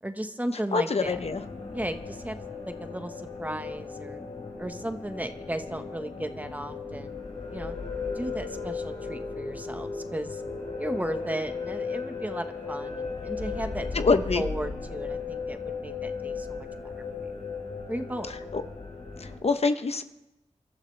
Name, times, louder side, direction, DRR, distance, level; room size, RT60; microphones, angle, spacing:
voice 1, 0.0-1.2 1.7-2.4 2.7-4.2 4.6-7.2 7.5-7.8 8.1-10.4 10.8-16.9 17.3-17.4 17.9-18.3, right 1 dB, 15° right, 7 dB, 1.2 m, -35 dB
voice 2, 0.7-1.4 13.9-14.4 18.5-18.6 19.2-20.0, left 4 dB, 55° left, 9 dB, 0.8 m, -25 dB
sound 1, 1.0-19.4, left 4 dB, 80° left, 4.4 m, -36 dB
27.5 x 13.0 x 3.3 m, 0.94 s
wide cardioid pair, 70°, 12 cm